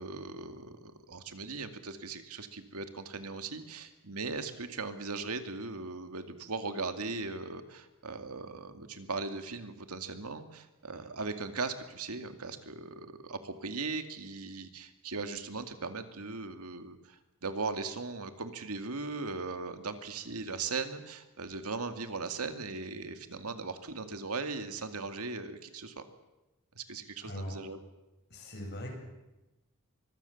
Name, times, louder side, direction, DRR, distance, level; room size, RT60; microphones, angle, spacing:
voice 1, 0.0-26.1 26.8-27.8, right 4 dB, 80° right, 8 dB, 2.2 m, -38 dB
voice 2, 27.2-27.6 28.3-28.9, equal, 50° left, 1 dB, 7.6 m, -40 dB
24.0 x 22.0 x 7.2 m, 1.0 s
head